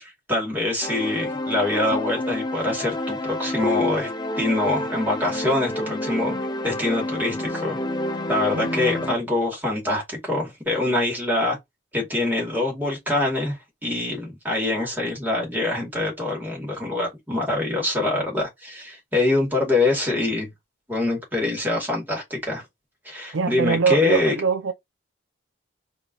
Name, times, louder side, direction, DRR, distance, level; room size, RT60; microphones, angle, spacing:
voice 1, 0.0-4.1 4.4-6.3 6.6-7.8 8.3-11.6 11.9-20.5 20.9-22.6 23.0-24.3, left 2 dB, 10° right, 2.5 m, -24 dB
sound 1, 0.8-9.2, left 1 dB, 20° left, 0.5 m, -29 dB
voice 2, 8.5-9.0 23.3-24.7, right 5 dB, 80° right, 0.5 m, -23 dB
4.3 x 3.2 x 3.9 m
head